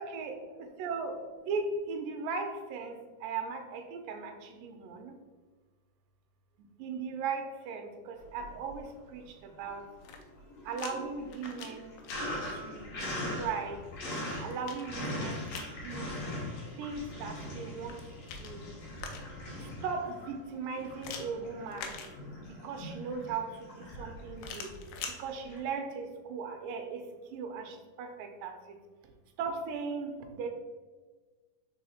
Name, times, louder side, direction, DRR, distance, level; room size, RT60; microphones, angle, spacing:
voice 1, 0.0-5.1 6.8-9.2 9.6-9.8 10.7-11.9 12.5-12.9 13.2-13.8 14.4-16.1 16.8-18.0 18.4-18.6 19.8-22.0 22.6-24.7 25.2-27.0 27.3-28.6 29.4-30.5, right 5 dB, 75° right, 5 dB, 2.2 m, -38 dB
Sink (filling or washing), 8.3-9.1 9.5-25.6, left 1 dB, 55° left, 2.5 m, -41 dB
sound 1, 9.9-10.9 11.3-12.2 13.9-15.8 17.7-19.5 21.0-22.6 24.4-25.2, left 6 dB, 75° left, 2.1 m, -45 dB
5.4 x 4.0 x 4.3 m, 1.4 s
omnidirectional pair, 4.3 m